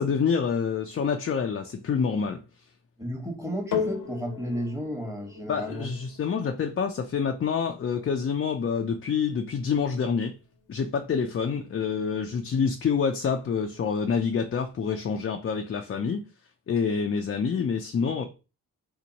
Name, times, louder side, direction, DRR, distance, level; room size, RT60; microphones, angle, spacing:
voice 1, 0.0-2.4 5.5-10.3 10.7-16.2 16.7-18.2, left 6 dB, 40° left, 0.5 m, -27 dB
voice 2, 3.0-5.9, equal, 10° right, 1.2 m, -33 dB
sound 1, 3.7-12.3 13.0-13.1, left 7 dB, 70° left, 0.8 m, -39 dB
2.8 x 2.1 x 3.9 m
supercardioid pair, 45°, 33 cm